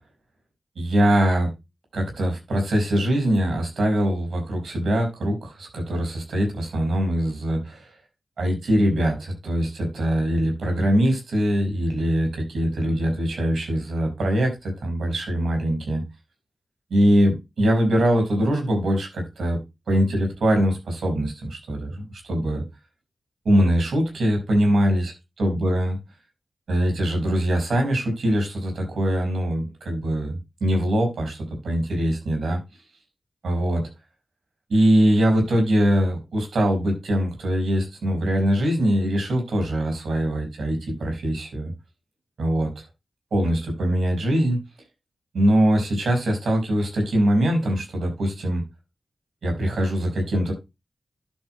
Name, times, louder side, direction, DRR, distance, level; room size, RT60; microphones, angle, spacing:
voice 1, 0.8-1.5 1.9-7.9 8.4-16.0 16.9-19.6 19.9-22.6 23.5-25.1 25.4-26.0 26.7-31.4 31.6-32.6 33.4-33.8 34.7-41.7 42.4-42.7 43.3-44.6 45.3-48.6 49.4-50.5, equal, 90° right, 2 dB, 5.3 m, -22 dB
12.0 x 8.4 x 2.2 m, 0.23 s
cardioid pair, 45°, 0 cm